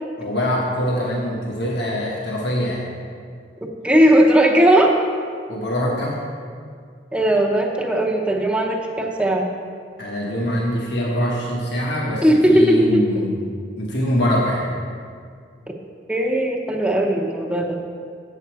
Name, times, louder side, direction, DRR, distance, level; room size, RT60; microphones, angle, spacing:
voice 1, 0.2-2.8 5.5-6.2 10.0-12.2 12.5-13.4 13.8-14.7, equal, 70° left, -3 dB, 1.2 m, -23 dB
voice 2, 3.8-4.9 7.1-9.4 12.2-13.0 16.1-17.8, right 1 dB, 5° right, 0 dB, 0.7 m, -17 dB
8.1 x 7.2 x 4.7 m, 2.2 s
head